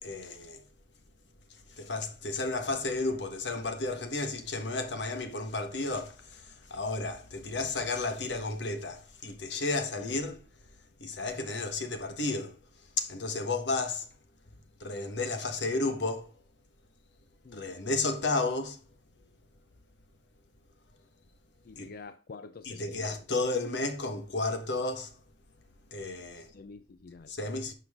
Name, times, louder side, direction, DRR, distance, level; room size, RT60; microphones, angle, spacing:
voice 1, 0.0-0.6 1.5-10.4 11.0-12.6 13.0-14.1 14.8-16.3 17.5-18.8 21.8-21.9 22.6-25.1 25.9-26.6 27.3-27.7, left 3 dB, 80° left, 1.4 m, -32 dB
voice 2, 21.6-23.2 26.3-27.3, left 4 dB, 55° left, 0.4 m, -48 dB
11.5 x 6.3 x 3.6 m
head